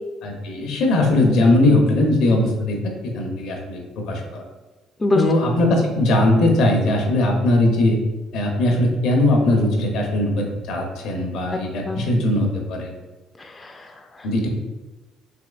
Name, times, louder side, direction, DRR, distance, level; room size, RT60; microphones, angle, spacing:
voice 1, 0.2-2.8 3.0-4.4 5.1-8.0 8.3-12.9 14.2-14.5, left 1 dB, 75° left, 2 dB, 0.6 m, -19 dB
voice 2, 5.0-5.3 11.9-12.0 13.4-14.3, left 2 dB, 25° left, 3 dB, 0.3 m, -24 dB
3.5 x 3.0 x 2.3 m, 1.2 s
supercardioid pair, 80°, 0 cm